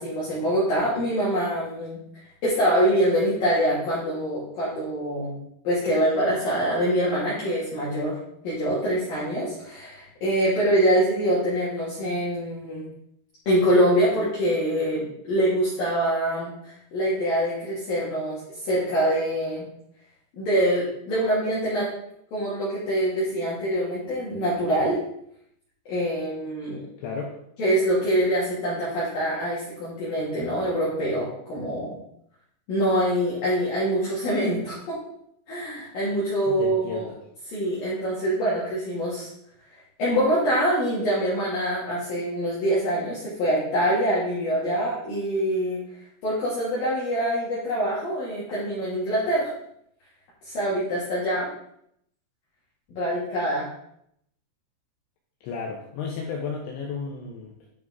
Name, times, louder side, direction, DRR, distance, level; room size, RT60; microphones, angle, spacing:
voice 1, 0.0-2.0 2.4-5.4 5.6-8.2 8.4-12.9 13.5-18.4 18.7-19.7 20.4-21.9 22.3-25.0 25.9-26.8 27.6-32.0 32.7-35.0 35.5-37.1 37.5-39.3 40.0-45.8 46.2-49.5 50.4-51.5 52.9-53.7, equal, 55° left, -8 dB, 3.0 m, -24 dB
voice 2, 27.0-27.4 36.5-37.2 55.4-57.6, left 5 dB, 75° left, -1 dB, 2.9 m, -33 dB
10.5 x 5.0 x 3.6 m, 0.72 s
omnidirectional pair, 6.0 m